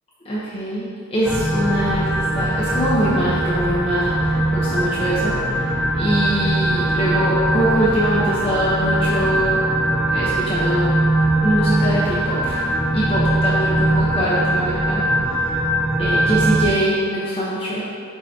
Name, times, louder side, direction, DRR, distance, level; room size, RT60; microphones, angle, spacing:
voice 1, 0.2-9.6 10.1-11.0 11.4-12.6 12.9-15.1 16.0-17.8, equal, 25° left, -9 dB, 1.0 m, -23 dB
sound 1, 1.2-16.7, right 1 dB, ahead, 0.4 m, -21 dB
9.5 x 3.9 x 2.9 m, 2.3 s
head